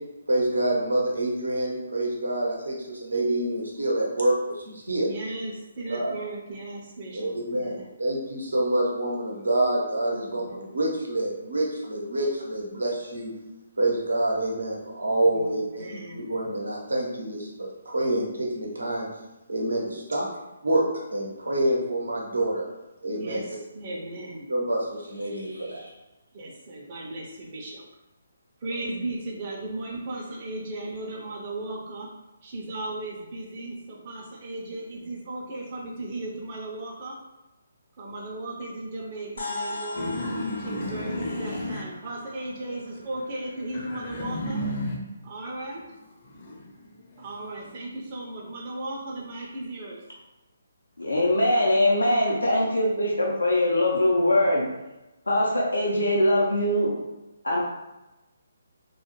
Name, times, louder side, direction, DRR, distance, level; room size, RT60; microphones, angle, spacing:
voice 1, 0.3-5.1 5.9-6.1 7.1-7.7 8.0-13.3 13.8-15.8 16.3-19.1 19.5-20.3 20.6-20.8 21.1-22.6 23.0-23.4 23.9-24.0 24.5-25.9, right 1 dB, 85° right, -2 dB, 0.7 m, -27 dB
voice 2, 5.0-7.9 10.1-10.7 15.1-16.3 23.0-24.5 26.3-27.8 28.6-32.1 32.4-37.2 38.0-40.1 40.6-44.6 45.2-45.8 47.2-50.0, right 2 dB, 35° right, -3 dB, 0.5 m, -36 dB
sound 1, 39.4-44.0, left 2 dB, 65° left, 0.9 m, -39 dB
sound 2, 40.0-42.6 42.9-45.2 45.7-47.7, left 1 dB, 45° left, 0.5 m, -33 dB
voice 3, 51.0-54.6 55.3-56.9 57.4-57.6, left 1 dB, 90° left, -3 dB, 0.6 m, -22 dB
2.3 x 2.1 x 3.0 m, 1.0 s
figure-of-eight pair, 145°, 0 cm